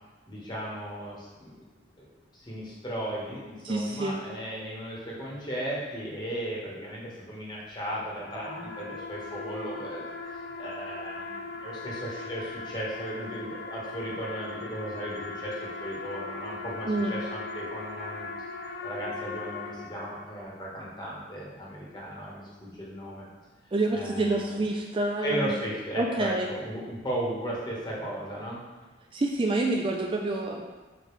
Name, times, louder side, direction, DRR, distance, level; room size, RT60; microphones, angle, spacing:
voice 1, 0.3-1.6 2.3-10.0 10.3-18.5 18.8-23.2 23.9-24.6 25.2-28.6, right 1 dB, 25° left, -5 dB, 1.4 m, -36 dB
voice 2, 3.6-4.2 16.9-17.1 23.7-25.6 26.0-26.5 29.1-30.6, right 2 dB, 25° right, 1 dB, 0.4 m, -27 dB
sound 1, 7.8-20.6, left 3 dB, 55° left, 0.5 m, -39 dB
5.6 x 5.1 x 3.2 m, 1.2 s
head